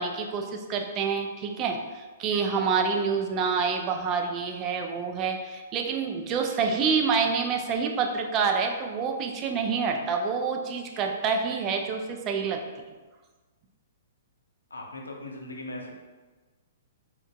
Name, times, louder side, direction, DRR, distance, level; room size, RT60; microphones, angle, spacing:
voice 1, 0.0-12.6, right 5 dB, 30° right, 4 dB, 0.3 m, -27 dB
voice 2, 14.7-15.9, left 2 dB, 85° left, 1 dB, 0.5 m, -39 dB
3.7 x 2.2 x 2.2 m, 1.3 s
hypercardioid pair, 120°, 0 cm